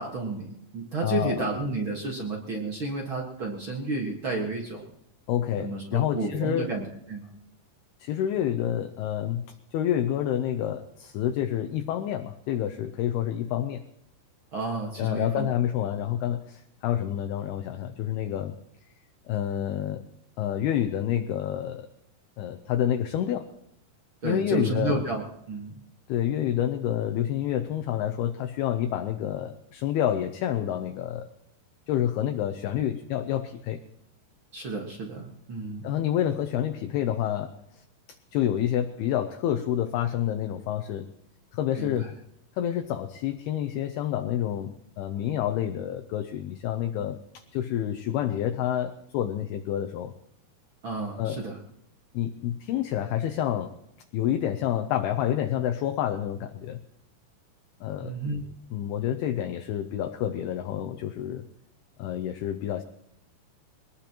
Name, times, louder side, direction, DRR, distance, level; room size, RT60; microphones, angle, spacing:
voice 1, 0.0-4.9 5.6-7.3 14.5-15.5 24.2-25.8 34.5-36.0 41.8-42.1 50.8-51.6 58.0-58.4, right 3 dB, 60° right, 0 dB, 1.3 m, -31 dB
voice 2, 1.0-1.5 5.3-6.7 8.0-13.8 15.0-18.6 19.3-20.0 20.4-21.9 22.4-23.5 24.2-25.0 26.1-31.3 31.9-33.8 35.8-37.8 38.3-41.1 41.5-42.1 42.6-50.1 51.2-51.4 52.1-53.7 54.1-56.8 57.8-58.1 58.7-61.5 62.0-62.8, left 11 dB, 80° left, 6 dB, 2.5 m, -28 dB
23.0 x 19.0 x 3.0 m, 0.78 s
omnidirectional pair, 5.0 m